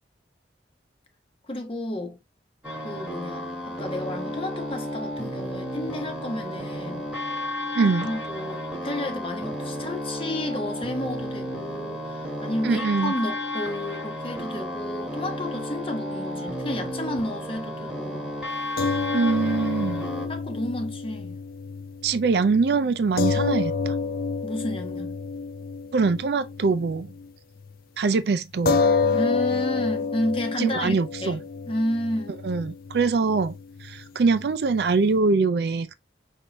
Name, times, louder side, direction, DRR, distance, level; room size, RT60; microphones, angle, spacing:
voice 1, 1.5-2.2 2.8-7.1 7.8-18.3 20.3-21.4 24.4-25.2 29.1-31.0 31.2-31.4 31.7-32.4, left 1 dB, 30° left, 0.9 m, -31 dB
sound 1, 2.6-20.3, left 1 dB, 5° right, 1.4 m, -32 dB
voice 2, 7.8-8.1 12.6-13.1 19.1-20.0 22.0-24.0 25.9-27.1 28.0-28.8 30.6-31.4 32.4-33.5 33.8-35.9, right 4 dB, 65° right, 0.4 m, -23 dB
sound 2, 18.8-27.3 27.6-27.8 28.7-35.2, left 4 dB, 55° left, 0.5 m, -29 dB
5.4 x 2.7 x 2.9 m
head